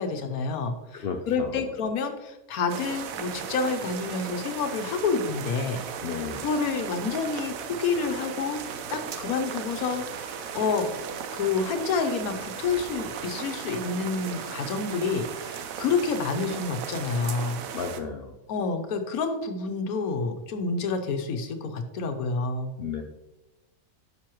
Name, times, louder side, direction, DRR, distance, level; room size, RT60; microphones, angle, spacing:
voice 1, 0.0-5.8 6.4-8.6 8.9-10.9 11.3-17.6 18.5-22.7, left 4 dB, 85° left, 6 dB, 1.2 m, -28 dB
voice 2, 0.9-1.6 6.0-6.5 17.7-18.3 22.8-23.0, left 6 dB, 60° left, 4 dB, 0.7 m, -33 dB
sound 1, 2.7-18.0, right 7 dB, 75° right, 1.1 m, -36 dB
9.3 x 6.1 x 3.0 m, 0.99 s
omnidirectional pair, 1.5 m